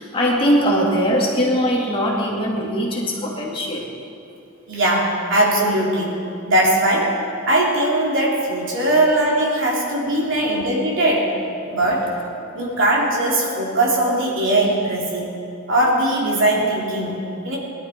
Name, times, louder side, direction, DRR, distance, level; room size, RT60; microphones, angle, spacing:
voice 1, 0.0-3.9, equal, 25° left, -3 dB, 2.4 m, -20 dB
voice 2, 4.7-7.2 7.5-11.3 11.7-12.1 12.5-15.3 15.7-17.6, right 1 dB, 60° right, -4 dB, 3.6 m, -20 dB
22.5 x 12.0 x 4.6 m, 2.8 s
head